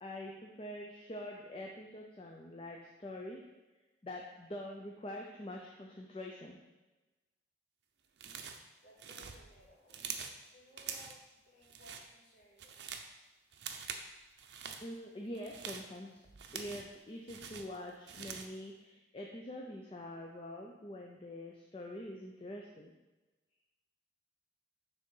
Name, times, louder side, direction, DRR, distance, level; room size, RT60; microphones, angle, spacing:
voice 1, 0.0-3.4 4.0-6.6 14.8-16.2 16.5-22.9, left 1 dB, 30° left, 0 dB, 0.5 m, -45 dB
sound 1, 8.2-8.7 9.0-10.4 10.8-11.2 11.6-12.1 12.4-13.1 13.5-14.1 14.4-14.8 15.3-17.0 17.3-18.6, right 7 dB, 75° right, 0.6 m, -45 dB
voice 2, 8.8-10.0 10.4-12.9, left 1 dB, 55° left, -6 dB, 2.2 m, -61 dB
6.5 x 3.5 x 5.4 m, 1.1 s
head